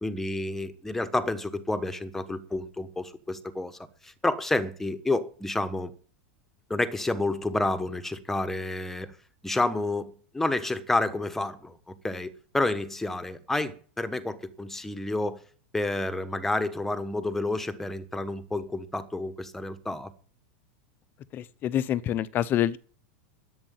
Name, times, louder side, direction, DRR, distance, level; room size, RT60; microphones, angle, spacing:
voice 1, 0.0-5.9 6.7-9.2 9.4-11.8 12.0-15.4 15.7-20.1, left 2 dB, 5° left, 1.2 m, -29 dB
voice 2, 21.3-22.8, left 11 dB, 30° left, 0.8 m, -27 dB
10.5 x 8.8 x 9.3 m
supercardioid pair, 140°, 6 cm